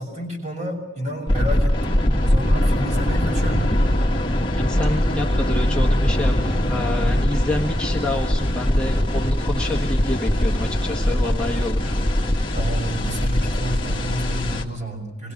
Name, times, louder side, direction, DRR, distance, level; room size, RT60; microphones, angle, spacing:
voice 1, 0.0-3.7 12.5-15.3, equal, 35° right, 2 dB, 6.5 m, -30 dB
sound 1, 1.3-14.6, left 1 dB, 25° left, 2.0 m, -21 dB
voice 2, 4.5-12.0, left 1 dB, 5° left, -3 dB, 1.5 m, -28 dB
26.0 x 22.0 x 6.0 m, 1.0 s
head